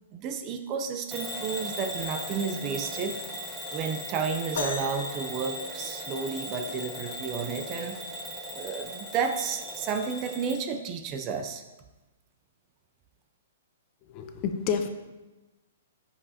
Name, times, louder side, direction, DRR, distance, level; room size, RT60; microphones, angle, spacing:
voice 1, 0.1-3.2 3.7-8.0 8.5-11.6, right 6 dB, 25° right, 7 dB, 0.5 m, -32 dB
Bell / Alarm, 1.1-10.6, equal, 10° right, 1.2 m, -38 dB
sound 1, 4.5-6.4 8.1-8.2 9.0-9.2 10.1-10.2, left 4 dB, 65° left, 1.2 m, -37 dB
voice 2, 14.1-14.9, left 7 dB, 30° left, 6 dB, 0.7 m, -29 dB
13.0 x 5.4 x 2.8 m, 1.1 s
hypercardioid pair, 155°, 0 cm